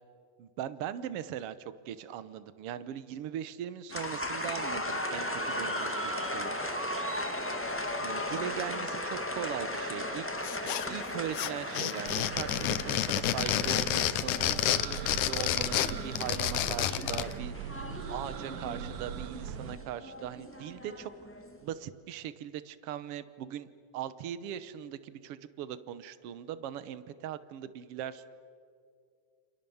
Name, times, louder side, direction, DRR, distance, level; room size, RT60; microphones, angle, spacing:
voice 1, 0.4-6.5 8.0-10.3 10.6-17.8 18.1-21.1 21.6-23.7 23.9-28.3, right 10 dB, 65° right, 13 dB, 1.6 m, -40 dB
sound 1, 3.9-21.6, left 1 dB, 10° left, 0.6 m, -37 dB
sound 2, 10.4-11.1 11.3-17.3, left 13 dB, 80° left, 2.2 m, -29 dB
sound 3, 12.1-19.8, right 8 dB, 85° right, 2.7 m, -41 dB
29.0 x 28.0 x 7.2 m, 2.3 s
omnidirectional pair, 3.6 m